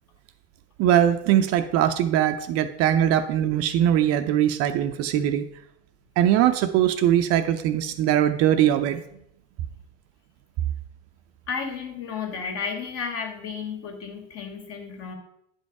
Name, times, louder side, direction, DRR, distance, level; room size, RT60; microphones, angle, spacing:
voice 1, 0.8-5.5 6.2-9.0, right 11 dB, 45° right, 8 dB, 0.6 m, -21 dB
voice 2, 11.5-15.1, left 5 dB, 45° left, 4 dB, 2.1 m, -33 dB
10.0 x 5.4 x 4.7 m, 0.74 s
supercardioid pair, 135°, 35 cm